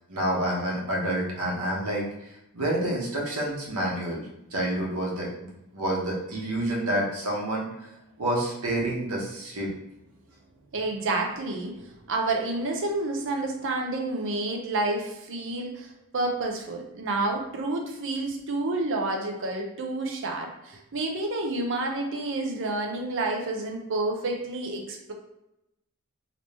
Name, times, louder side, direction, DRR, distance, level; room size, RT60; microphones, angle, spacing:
voice 1, 0.0-7.7 8.2-9.7, right 1 dB, 85° right, -3 dB, 1.1 m, -29 dB
voice 2, 10.7-25.1, right 2 dB, 60° right, 2 dB, 0.7 m, -29 dB
3.0 x 2.8 x 3.3 m, 0.87 s
head